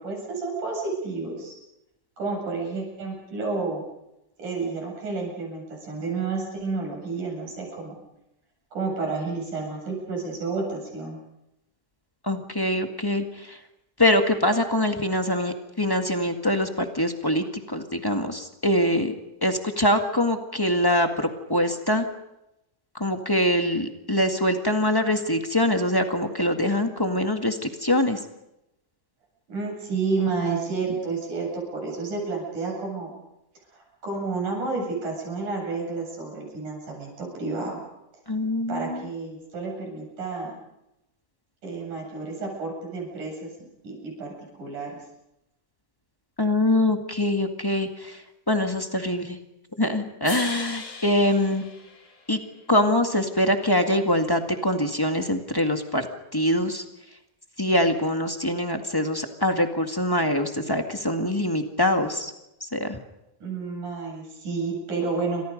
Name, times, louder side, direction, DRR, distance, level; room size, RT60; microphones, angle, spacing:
voice 1, 0.0-1.5 2.2-3.8 4.4-7.9 8.7-11.2 29.5-33.1 34.0-37.8 38.7-40.5 41.6-44.3 44.6-45.0 63.4-65.4, right 4 dB, 75° right, 0 dB, 9.5 m, -30 dB
voice 2, 12.2-13.6 14.0-19.1 19.4-22.0 22.9-28.2 38.3-39.1 46.4-48.2 48.5-49.4 49.8-51.6 52.3-52.4 52.7-56.1 56.3-56.8 57.6-62.3 62.7-63.0, left 1 dB, 15° left, 5 dB, 0.9 m, -24 dB
sound 1, 50.2-52.6, left 4 dB, 45° left, 4.1 m, -37 dB
29.0 x 26.0 x 5.3 m, 0.88 s
omnidirectional pair, 3.6 m